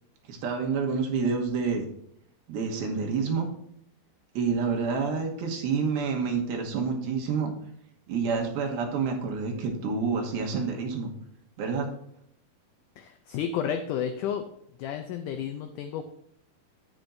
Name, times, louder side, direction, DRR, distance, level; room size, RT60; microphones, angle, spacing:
voice 1, 0.3-1.8 2.5-3.5 4.3-7.5 8.1-11.1 11.6-11.9, right 5 dB, 85° right, 1 dB, 3.1 m, -28 dB
voice 2, 13.0-14.4 14.8-16.0, left 8 dB, 85° left, 7 dB, 1.8 m, -31 dB
10.5 x 9.0 x 2.6 m, 0.72 s
omnidirectional pair, 4.3 m